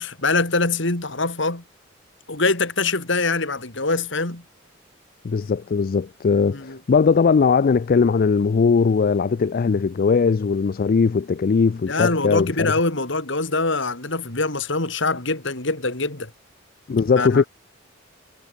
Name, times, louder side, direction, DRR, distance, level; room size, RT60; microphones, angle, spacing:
voice 1, 0.0-1.6 2.3-4.4 6.5-6.8 11.9-16.3 17.2-17.5, left 3 dB, 65° left, 3.3 m, -24 dB
voice 2, 5.2-12.7 16.9-17.4, left 5 dB, 45° left, 0.4 m, -19 dB
head